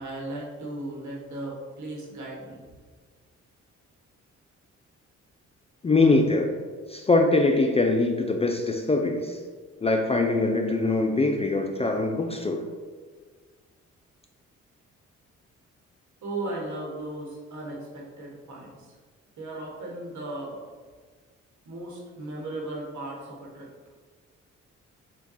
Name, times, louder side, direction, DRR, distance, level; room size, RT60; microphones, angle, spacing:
voice 1, 0.0-2.6 16.2-18.9 19.4-20.7 21.6-23.7, right 2 dB, 60° right, -2 dB, 1.1 m, -36 dB
voice 2, 5.8-6.6 6.9-9.4 9.8-12.6, left 3 dB, 20° left, 3 dB, 0.3 m, -23 dB
3.5 x 2.2 x 4.0 m, 1.5 s
supercardioid pair, 50°, 33 cm